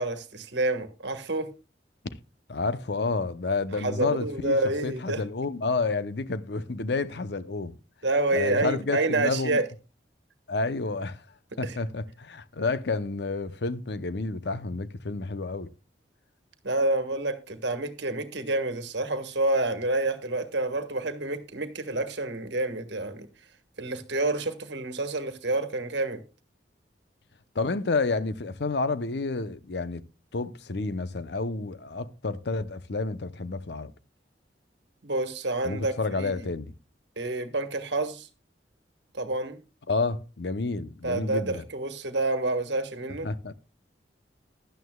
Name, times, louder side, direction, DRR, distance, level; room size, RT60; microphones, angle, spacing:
voice 1, 0.0-1.5 3.8-5.2 8.0-9.6 11.6-11.8 16.6-23.3 23.8-26.2 35.0-36.4 37.2-38.3 39.1-39.6 41.0-43.3, right 2 dB, 75° right, 1.5 m, -28 dB
voice 2, 2.5-7.8 8.3-9.6 10.5-11.2 11.6-15.7 27.5-30.0 30.3-33.9 35.6-36.7 39.9-41.6 43.2-43.5, left 3 dB, 65° left, 0.7 m, -30 dB
15.5 x 11.5 x 2.3 m
head